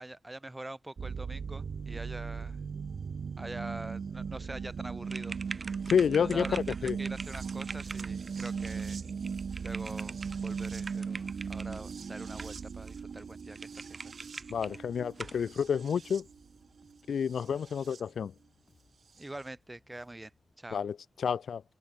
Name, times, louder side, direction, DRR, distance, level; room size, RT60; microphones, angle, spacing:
voice 1, 0.0-2.6 3.4-5.4 6.2-9.0 9.6-10.2 10.4-14.3 19.2-20.3 20.6-20.8, right 1 dB, 15° right, 1.2 m, -44 dB
sound 1, 1.0-18.0 19.2-19.3, right 6 dB, 55° right, 0.8 m, -38 dB
sound 2, 5.1-11.8 12.4-12.9 13.2-13.3 13.6-14.8 15.2-15.4, right 3 dB, 35° right, 1.3 m, -44 dB
voice 2, 5.9-7.0 14.5-16.3 17.1-18.3 20.7-21.6, left 7 dB, 70° left, 0.4 m, -29 dB
Bass guitar, 10.6-20.5, left 4 dB, 40° left, 3.9 m, -68 dB
wide cardioid pair, 125°, 0 cm